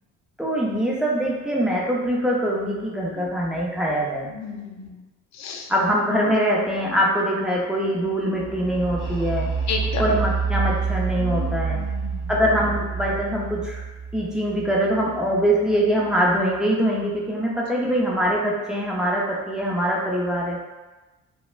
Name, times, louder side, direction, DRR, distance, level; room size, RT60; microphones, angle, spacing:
voice 1, 0.4-4.3 5.7-9.5 10.0-11.8 12.3-13.8 14.1-20.6, equal, ahead, -4 dB, 0.5 m, -23 dB
voice 2, 4.2-5.0 5.3-5.7 9.7-10.2 11.2-12.4 17.8-17.9, left 5 dB, 65° left, 2 dB, 0.5 m, -33 dB
sound 1, 8.4-16.1, right 5 dB, 15° left, 1.3 m, -28 dB
3.2 x 2.1 x 2.4 m, 1.2 s
cardioid pair, 90°, 30 cm